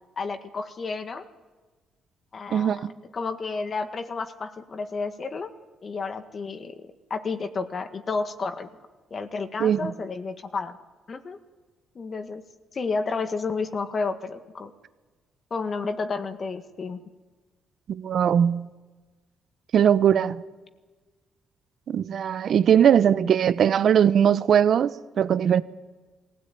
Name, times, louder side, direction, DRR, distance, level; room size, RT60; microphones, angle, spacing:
voice 1, 0.2-1.3 2.3-2.9 3.1-5.5 5.8-8.7 9.1-10.8 11.1-11.4 11.9-12.4 12.7-14.7 15.5-17.0, left 4 dB, 45° left, 1.7 m, -31 dB
voice 2, 2.5-2.9 9.6-9.9 17.9-18.7 19.7-20.4 21.9-25.6, right 9 dB, 60° right, 0.9 m, -20 dB
22.0 x 16.5 x 9.4 m
cardioid pair, 90°, 0 cm